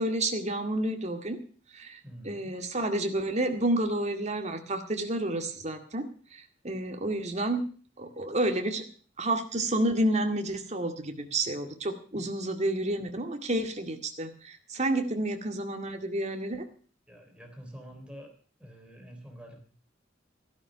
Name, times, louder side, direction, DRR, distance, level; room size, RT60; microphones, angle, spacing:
voice 1, 0.0-1.4 1.7-6.0 6.3-7.6 8.0-8.8 9.2-16.7, right 1 dB, 35° right, 6 dB, 2.1 m, -30 dB
voice 2, 2.0-2.6 12.1-12.3 17.1-18.3 18.6-19.6, equal, 5° right, 3 dB, 3.6 m, -47 dB
14.0 x 11.5 x 6.2 m, 0.41 s
head